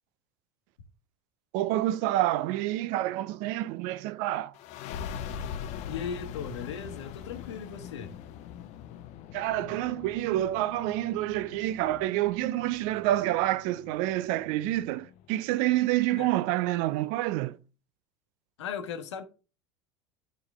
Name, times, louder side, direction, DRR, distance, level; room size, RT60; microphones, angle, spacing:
voice 1, 1.5-4.6 9.3-17.6, right 15 dB, 60° right, 0.5 m, -28 dB
sound 1, 4.5-15.8, left 8 dB, 55° left, 0.7 m, -42 dB
voice 2, 5.8-8.1 16.2-16.3 18.6-19.2, left 6 dB, 80° left, 1.0 m, -37 dB
9.5 x 3.7 x 3.5 m
hypercardioid pair, 80°, 15 cm